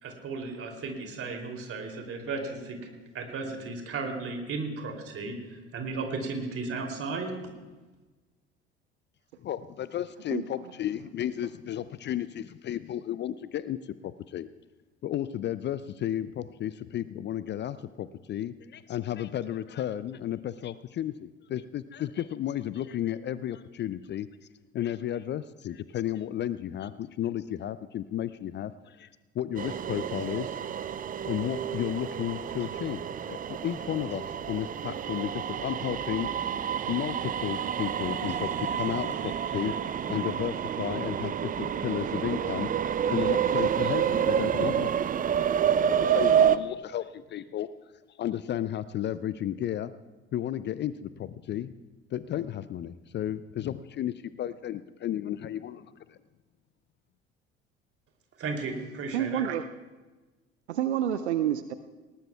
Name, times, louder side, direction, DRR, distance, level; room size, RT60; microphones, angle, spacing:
voice 1, 0.0-2.8 3.1-7.3 58.4-59.4, right 3 dB, 40° right, 3 dB, 3.0 m, -35 dB
voice 2, 9.4-14.5 15.0-24.3 24.7-29.1 29.3-30.6 31.3-33.0 33.3-36.3 36.9-39.7 40.1-42.7 43.1-45.0 45.2-45.3 45.9-47.7 48.2-49.9 50.3-51.7 52.1-56.2, left 11 dB, 35° left, 15 dB, 0.5 m, -33 dB
sound 1, 29.6-46.6, right 9 dB, 25° right, 0.5 m, -29 dB
voice 3, 59.1-59.6 60.7-61.7, right 10 dB, 80° right, 11 dB, 0.5 m, -28 dB
19.5 x 19.0 x 2.3 m, 1.2 s
figure-of-eight pair, 60°, 33 cm